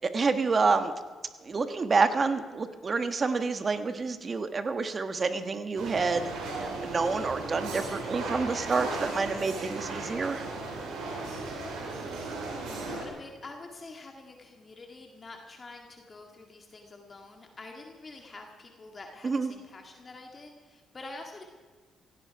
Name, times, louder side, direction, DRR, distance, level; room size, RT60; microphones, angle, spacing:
voice 1, 0.1-0.9 1.4-10.4 19.2-19.5, right 4 dB, 35° right, 9 dB, 1.5 m, -28 dB
voice 2, 4.2-4.6 12.7-21.4, left 3 dB, 35° left, 2 dB, 2.0 m, -46 dB
sound 1, 5.8-13.1, right 3 dB, 85° right, 5.0 m, -36 dB
17.0 x 16.5 x 4.8 m, 1.4 s
cardioid pair, 90°, 0 cm